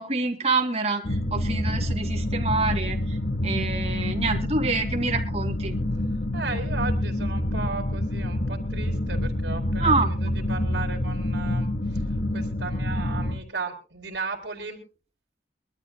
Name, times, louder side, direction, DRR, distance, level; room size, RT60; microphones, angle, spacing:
voice 1, 0.0-3.2 3.4-5.7 9.8-10.1, right 3 dB, 35° right, 3 dB, 2.5 m, -27 dB
sound 1, 1.0-13.4, left 1 dB, 55° left, 1.1 m, -27 dB
voice 2, 6.3-12.0 12.3-14.8, right 4 dB, 75° right, 3 dB, 4.3 m, -35 dB
24.0 x 13.0 x 2.2 m, 0.36 s
head